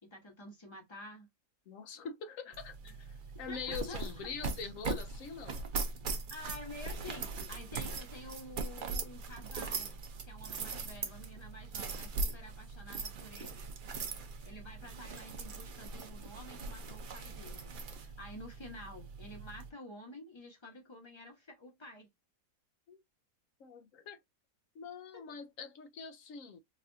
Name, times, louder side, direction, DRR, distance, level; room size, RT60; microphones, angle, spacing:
voice 1, 0.0-1.3 3.5-4.3 6.3-9.9 10.2-13.6 14.4-22.1 25.1-25.3, left 1 dB, 20° left, 1.0 m, -50 dB
voice 2, 1.7-5.6 22.9-23.0 23.6-24.2 24.7-26.6, left 6 dB, 65° left, 0.9 m, -44 dB
sound 1, 2.5-19.7, right 4 dB, 75° right, 0.4 m, -40 dB
4.1 x 2.5 x 2.6 m
omnidirectional pair, 1.7 m